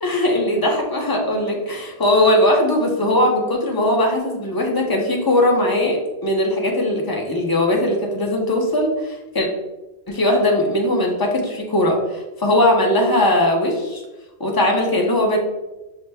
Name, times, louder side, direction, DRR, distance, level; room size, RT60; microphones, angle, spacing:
voice 1, 0.0-9.5 10.1-14.0 14.4-15.4, left 1 dB, 25° left, 0 dB, 0.5 m, -19 dB
5.7 x 2.1 x 3.3 m, 1.0 s
omnidirectional pair, 1.1 m